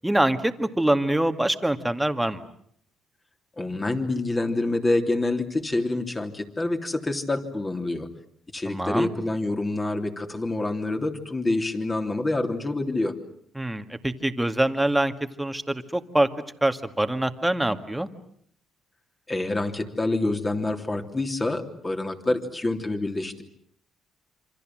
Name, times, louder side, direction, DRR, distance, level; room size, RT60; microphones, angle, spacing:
voice 1, 0.0-2.4 8.7-9.1 13.6-15.1 15.4-16.3 16.6-18.1, right 1 dB, 5° right, 8 dB, 2.0 m, -24 dB
voice 2, 3.6-8.1 8.5-13.1 19.3-23.4, left 2 dB, 20° left, 5 dB, 3.4 m, -27 dB
27.5 x 25.5 x 7.7 m, 0.66 s
cardioid pair, 90°, 0 cm